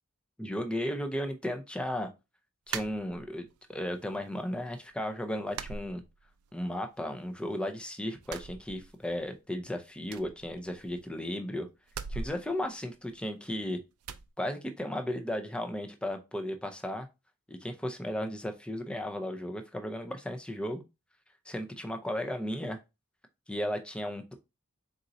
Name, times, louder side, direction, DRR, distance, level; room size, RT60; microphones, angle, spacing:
voice 1, 0.4-2.1 2.7-6.0 6.5-11.7 12.1-13.8 14.4-17.1 17.5-20.8 21.5-22.8 23.5-24.3, left 1 dB, 5° left, 6 dB, 0.6 m, -35 dB
sound 1, 2.7-3.6 4.0-4.7 4.9-5.1 5.5-6.6 6.9-7.8 8.2-9.3 9.6-9.7 10.0-11.2 11.9-13.5 14.0-14.3, right 6 dB, 80° right, 0.4 m, -42 dB
4.4 x 3.9 x 2.6 m, 0.26 s
head